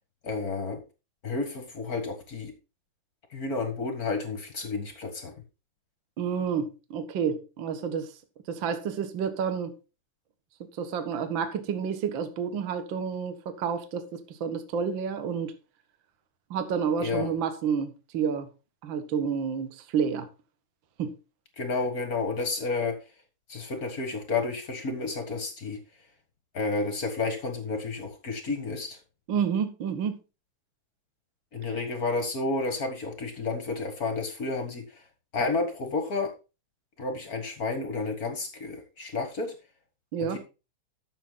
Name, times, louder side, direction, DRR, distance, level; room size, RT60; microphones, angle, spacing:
voice 1, 0.2-0.8 1.2-2.5 3.3-5.3 17.0-17.3 21.6-22.9 23.5-25.8 26.5-29.0 31.5-34.8 35.3-36.3 37.0-39.5, left 3 dB, 45° left, 1.2 m, -31 dB
voice 2, 6.2-8.1 8.5-9.7 10.8-15.5 16.5-18.5 18.8-20.3 21.0-21.1 29.3-30.2 40.1-40.4, right 7 dB, 55° right, 1.4 m, -29 dB
12.0 x 6.7 x 4.0 m
omnidirectional pair, 4.1 m